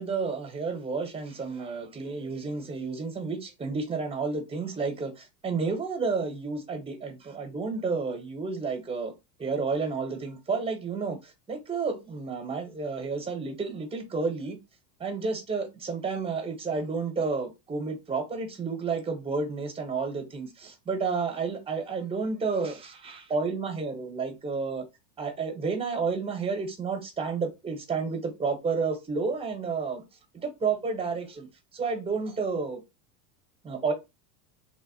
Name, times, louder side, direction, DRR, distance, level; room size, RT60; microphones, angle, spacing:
voice 1, 0.0-9.1 9.4-14.6 15.0-24.8 25.2-30.0 30.3-31.5 31.7-32.8 33.6-33.9, right 4 dB, 15° right, 0.8 m, -31 dB
3.4 x 2.0 x 2.6 m
supercardioid pair, 120°, 43 cm